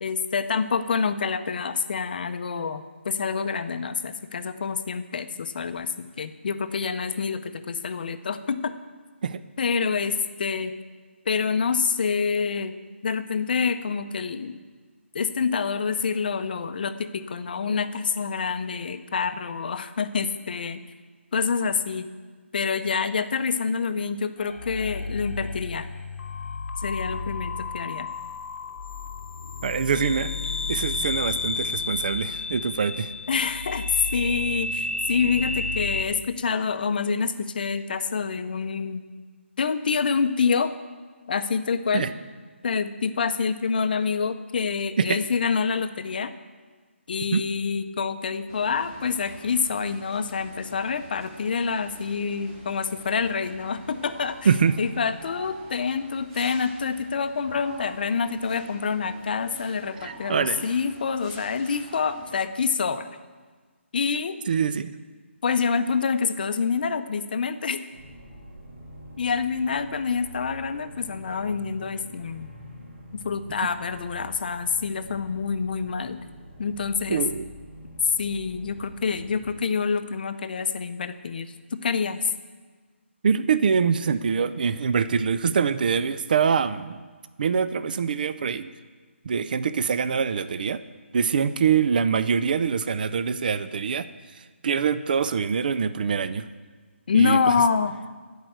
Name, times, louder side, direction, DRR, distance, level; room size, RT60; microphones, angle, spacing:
voice 1, 0.0-8.7 9.6-10.7 11.3-12.7 13.0-14.6 15.1-20.8 21.3-22.1 22.5-25.9 26.8-28.1 33.3-33.9 34.1-39.0 39.6-40.7 41.3-42.1 42.6-46.3 47.1-54.5 54.8-63.1 63.9-64.4 65.4-67.9 69.2-72.5 73.2-76.2 76.6-77.2 78.2-81.5 81.8-82.3 97.1-98.0, left 5 dB, 45° left, 11 dB, 0.6 m, -27 dB
sound 1, 24.4-36.0, left 3 dB, 80° left, 0.9 m, -32 dB
voice 2, 29.6-30.3 30.7-33.1 41.9-42.1 45.0-45.2 47.3-47.4 54.5-54.8 60.0-60.7 64.5-64.9 77.1-77.5 83.2-87.0 87.4-88.7 89.3-90.8 91.1-94.1 94.6-96.5 97.1-97.4, right 6 dB, 40° right, 13 dB, 0.4 m, -24 dB
sound 2, 48.5-62.3, right 2 dB, 20° right, 2.3 m, -46 dB
sound 3, 67.9-79.5, left 1 dB, 75° right, 3.3 m, -45 dB
10.5 x 4.8 x 7.9 m, 1.4 s
hypercardioid pair, 165°, 7 cm